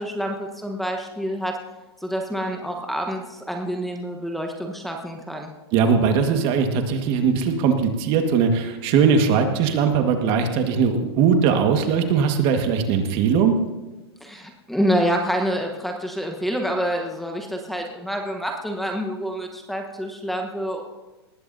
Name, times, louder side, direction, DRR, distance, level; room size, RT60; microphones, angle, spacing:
voice 1, 0.0-1.5 2.0-5.5 14.2-20.8, equal, ahead, 1 dB, 1.1 m, -27 dB
voice 2, 5.7-13.5, right 6 dB, 40° right, 5 dB, 1.7 m, -20 dB
19.0 x 15.0 x 2.7 m, 1.1 s
hypercardioid pair, 135°, 13 cm